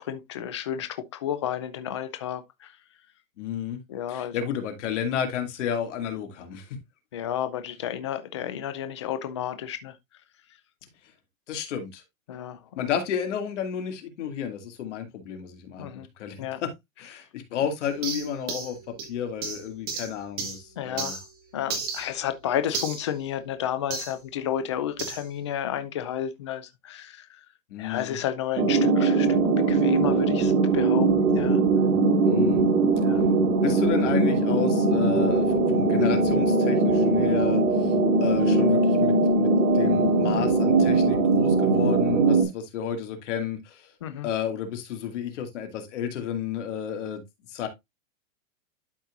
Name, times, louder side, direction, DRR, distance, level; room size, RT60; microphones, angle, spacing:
voice 1, 0.0-2.7 3.9-4.4 7.1-10.0 12.3-12.9 15.8-16.1 16.4-16.6 20.8-21.2 21.5-27.3 27.8-31.6 33.0-33.3 44.0-44.3, left 10 dB, 25° left, 0.4 m, -32 dB
voice 2, 3.4-3.8 4.1-6.8 11.5-12.0 12.8-15.9 16.2-16.7 17.0-21.2 27.7-28.2 32.3-32.6 33.6-37.9 38.2-39.5 39.7-43.9 44.2-47.2 47.5-47.7, left 8 dB, 55° left, 2.3 m, -31 dB
sound 1, 17.8-21.3 21.7-24.2 25.0-25.3, right 5 dB, 20° right, 1.5 m, -35 dB
sound 2, 28.6-42.4, right 3 dB, 85° right, 2.4 m, -21 dB
12.0 x 4.3 x 2.5 m
supercardioid pair, 165°, 42 cm